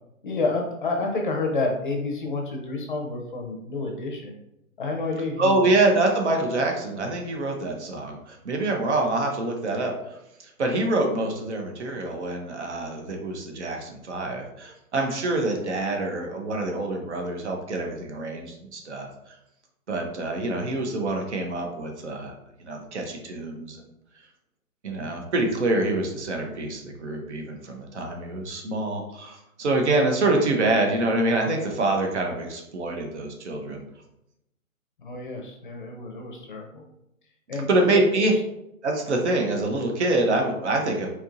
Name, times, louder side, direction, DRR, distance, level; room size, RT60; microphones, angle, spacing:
voice 1, 0.2-4.4 4.8-5.7 35.0-36.9 37.5-38.2, left 3 dB, 35° left, 1 dB, 0.6 m, -29 dB
voice 2, 5.4-19.4 19.9-22.3 22.7-23.8 24.8-33.8 37.7-38.3 38.8-41.1, right 2 dB, 55° right, 2 dB, 0.9 m, -26 dB
4.5 x 2.9 x 2.6 m, 0.85 s
hypercardioid pair, 155°, 42 cm